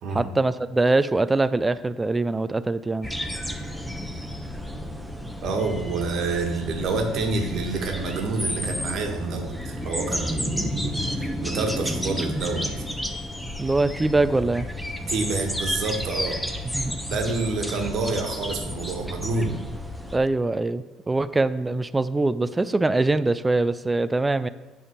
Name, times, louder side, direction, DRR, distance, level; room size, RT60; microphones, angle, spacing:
voice 1, 0.1-3.1 13.6-14.7 16.7-17.0 20.1-24.5, right 2 dB, 15° right, 14 dB, 0.4 m, -23 dB
sound 1, 3.0-20.2, equal, ahead, 0.9 m, -31 dB
voice 2, 5.4-12.7 15.1-16.4 17.1-19.6, right 3 dB, 60° right, 3 dB, 1.4 m, -28 dB
8.7 x 3.5 x 6.6 m, 1.2 s
hypercardioid pair, 70°, 0 cm